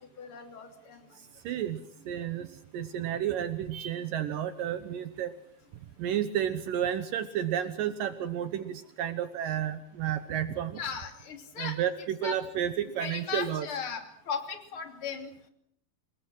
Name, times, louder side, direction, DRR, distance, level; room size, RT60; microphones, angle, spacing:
voice 1, 0.2-1.0 10.8-11.7 12.2-12.4 13.0-15.3, left 6 dB, 35° left, 5 dB, 3.4 m, -37 dB
voice 2, 1.4-2.5 2.7-5.3 6.0-10.8 11.6-13.7, right 10 dB, 70° right, 10 dB, 2.5 m, -31 dB
27.5 x 20.5 x 6.2 m, 0.68 s
omnidirectional pair, 4.4 m